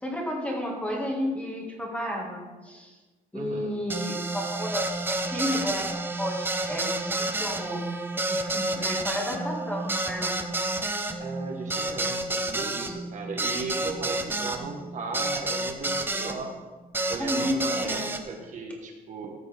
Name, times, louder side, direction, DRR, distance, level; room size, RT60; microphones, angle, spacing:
voice 1, 0.0-2.9 3.3-5.9 6.2-8.0 8.2-10.4 12.4-12.5 17.2-18.1, equal, 10° left, -1 dB, 1.8 m, -32 dB
voice 2, 3.3-3.7 11.2-16.6 17.1-19.3, right 4 dB, 45° right, 2 dB, 1.2 m, -36 dB
sound 1, 3.9-16.4 16.9-18.2, right 2 dB, 10° right, 0.6 m, -30 dB
14.5 x 6.2 x 3.4 m, 1.3 s
cardioid pair, 135°, 17 cm